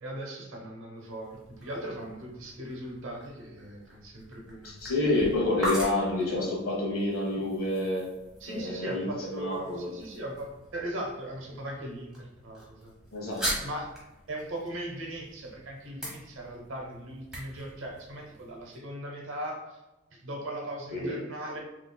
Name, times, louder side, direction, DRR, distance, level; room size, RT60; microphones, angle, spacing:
voice 1, 0.0-4.8 8.4-12.9 13.2-13.9 14.3-19.8 20.1-21.6, right 1 dB, 65° right, 0 dB, 0.8 m, -39 dB
sound 1, 1.0-18.8, equal, ahead, 0.9 m, -42 dB
voice 2, 4.6-8.1 8.5-9.9 13.1-13.4 20.9-21.2, left 2 dB, 85° left, -3 dB, 1.2 m, -28 dB
3.7 x 3.1 x 2.2 m, 1.0 s
head